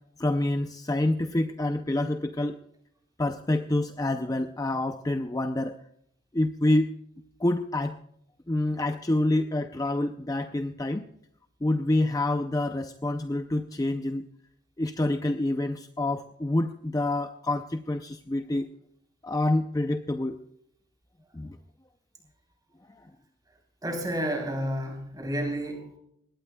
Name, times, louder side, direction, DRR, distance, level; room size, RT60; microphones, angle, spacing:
voice 1, 0.2-2.6 3.2-5.8 6.3-6.9 7.4-8.0 8.5-11.1 11.6-14.3 14.8-18.7 19.2-20.4 21.3-21.6, left 1 dB, 15° left, 7 dB, 0.4 m, -27 dB
voice 2, 23.8-26.0, equal, 20° right, 2 dB, 3.6 m, -31 dB
20.5 x 18.0 x 2.3 m, 0.72 s
head